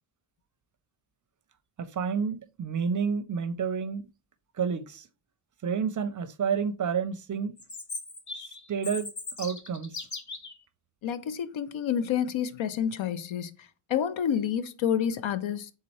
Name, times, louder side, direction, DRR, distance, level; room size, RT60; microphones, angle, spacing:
voice 1, 1.8-4.0 4.6-5.1 5.6-7.6 8.7-9.1 9.4-10.1, right 6 dB, 40° right, 0.5 m, -29 dB
Chirp tweet, 7.6-10.6, left 4 dB, 35° left, 1.0 m, -38 dB
voice 2, 11.0-15.7, left 8 dB, 70° left, 0.7 m, -29 dB
4.0 x 3.7 x 3.0 m
cardioid pair, 80°, 49 cm